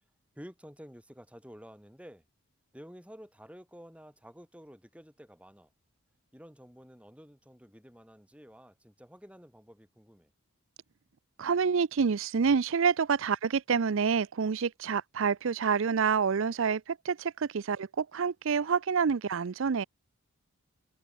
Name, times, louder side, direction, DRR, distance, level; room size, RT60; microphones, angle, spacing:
voice 1, 0.3-2.2 2.7-5.7 6.3-10.3, equal, 5° right, 5.9 m, -51 dB
voice 2, 11.4-19.8, right 6 dB, 60° right, 0.5 m, -28 dB
head